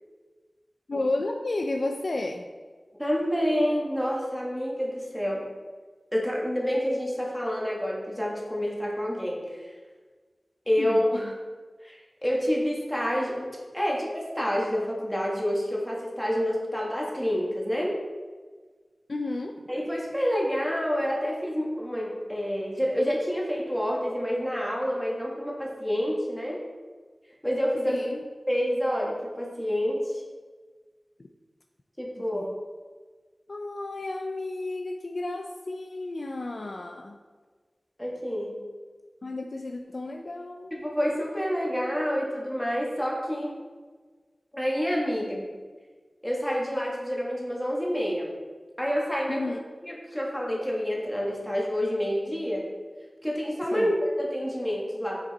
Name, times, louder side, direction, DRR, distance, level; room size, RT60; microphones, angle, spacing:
voice 1, 0.9-2.4 10.8-11.4 19.1-19.5 27.9-28.2 32.3-32.5 33.5-37.2 39.2-40.7 49.3-49.6 53.7-53.9, left 2 dB, 65° left, 3 dB, 0.4 m, -32 dB
voice 2, 3.0-5.4 6.1-9.7 10.7-11.3 11.8-13.5 13.7-18.0 19.7-26.6 27.4-28.1 28.5-30.2 32.0-32.5 38.0-38.6 40.7-43.5 44.5-45.4 46.2-48.3 48.8-49.4 49.8-52.7 53.2-55.2, equal, 5° left, -3 dB, 1.4 m, -28 dB
6.0 x 5.1 x 4.0 m, 1.4 s
wide cardioid pair, 65°, 0 cm